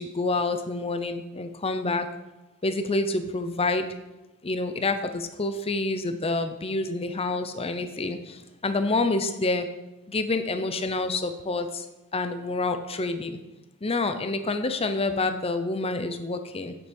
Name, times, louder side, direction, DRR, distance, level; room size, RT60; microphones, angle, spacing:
voice 1, 0.0-2.1 2.6-3.9 4.4-9.7 10.1-11.9 12.1-13.4 13.8-16.7, left 2 dB, 25° left, 8 dB, 0.7 m, -28 dB
8.1 x 8.0 x 5.3 m, 1.0 s
head